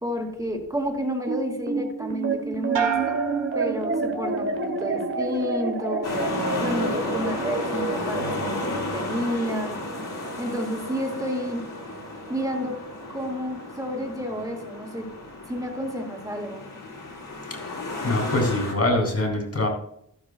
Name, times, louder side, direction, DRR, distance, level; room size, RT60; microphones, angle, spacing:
voice 1, 0.0-3.2 3.5-6.1 6.5-9.8 10.4-11.7 12.3-12.8 13.1-15.1 15.5-16.6, equal, 10° right, 2 dB, 3.1 m, -30 dB
sound 1, 1.3-13.9, right 3 dB, 35° right, 1.6 m, -30 dB
sound 2, 2.7-4.5 4.9-5.5, right 7 dB, 85° right, 1.8 m, -31 dB
sound 3, 6.0-18.7, left 2 dB, 65° left, 4.8 m, -33 dB
voice 2, 18.0-19.7, left 1 dB, 45° left, 1 dB, 3.7 m, -24 dB
14.0 x 12.5 x 2.4 m, 0.71 s
wide cardioid pair, 100°, 34 cm